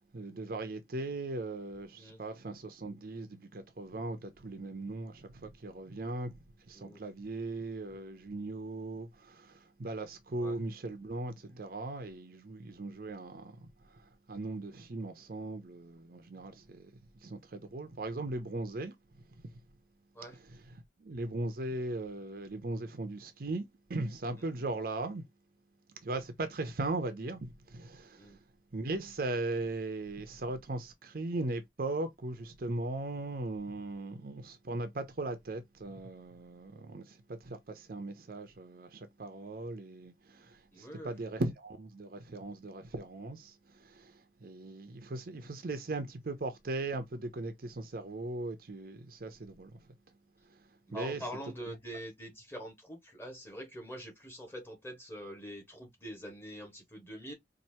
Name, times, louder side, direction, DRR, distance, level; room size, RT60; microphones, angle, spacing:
voice 1, 0.1-6.4 6.7-19.5 20.3-25.2 26.0-28.4 28.7-49.8 50.5-51.2, right 2 dB, 55° right, 0.6 m, -39 dB
voice 2, 40.7-41.1 50.9-57.3, equal, 15° left, 1.5 m, -44 dB
4.3 x 2.6 x 2.7 m
head